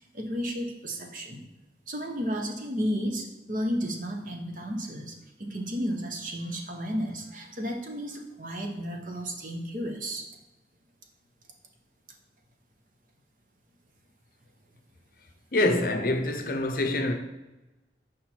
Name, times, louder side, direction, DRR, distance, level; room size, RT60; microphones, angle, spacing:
voice 1, 0.1-1.4 1.9-10.2, equal, 45° right, 0.9 m, -33 dB
voice 2, 15.5-17.1, left 2 dB, 50° left, 0.7 m, -25 dB
6.0 x 5.0 x 4.4 m
head